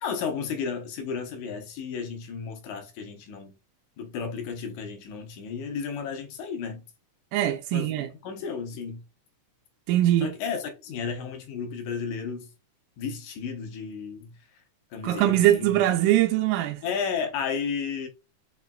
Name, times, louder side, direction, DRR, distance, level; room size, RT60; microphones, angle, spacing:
voice 1, 0.0-3.5 4.0-6.8 7.7-8.0 8.2-9.0 10.2-12.5 13.0-14.3 14.9-15.8 16.8-18.1, left 6 dB, 75° left, 2.2 m, -33 dB
voice 2, 7.3-8.1 9.9-10.3 15.0-16.8, right 13 dB, 85° right, 2.1 m, -22 dB
5.5 x 3.2 x 2.2 m
omnidirectional pair, 3.6 m